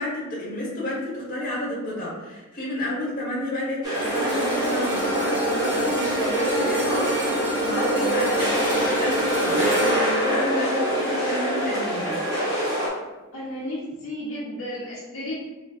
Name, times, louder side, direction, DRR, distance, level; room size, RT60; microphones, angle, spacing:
voice 1, 0.0-12.2, left 1 dB, 40° left, -6 dB, 1.2 m, -30 dB
sound 1, 3.8-12.9, equal, 20° right, 1.2 m, -25 dB
sound 2, 3.9-12.3 12.7-12.9, right 1 dB, 55° right, 1.2 m, -29 dB
voice 2, 8.5-8.8 13.3-15.5, left 1 dB, 65° left, -8 dB, 1.0 m, -33 dB
4.2 x 3.0 x 2.4 m, 1.2 s
head